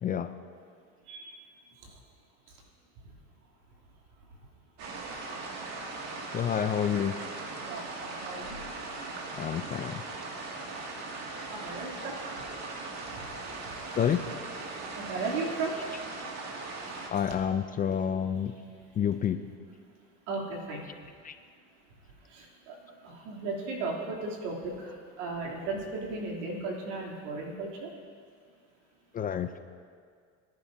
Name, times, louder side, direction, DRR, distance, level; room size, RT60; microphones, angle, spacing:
voice 1, 1.1-1.4 1.8-2.0 3.0-3.1 7.6-8.7 11.5-12.4 13.1-13.3 13.6-14.0 14.9-15.8 17.1-17.4 17.9-18.0 18.4-18.5 20.3-20.8 22.2-27.9, right 3 dB, 85° right, -2 dB, 3.1 m, -36 dB
sound 1, 4.8-17.1, right 3 dB, 45° right, 2.2 m, -39 dB
voice 2, 6.3-7.2 9.4-10.0 14.0-14.2 17.1-18.5 19.0-19.4 21.3-21.4 29.1-29.5, left 8 dB, 25° left, 9 dB, 0.4 m, -28 dB
24.0 x 10.5 x 2.7 m, 2.1 s
supercardioid pair, 115°, 35 cm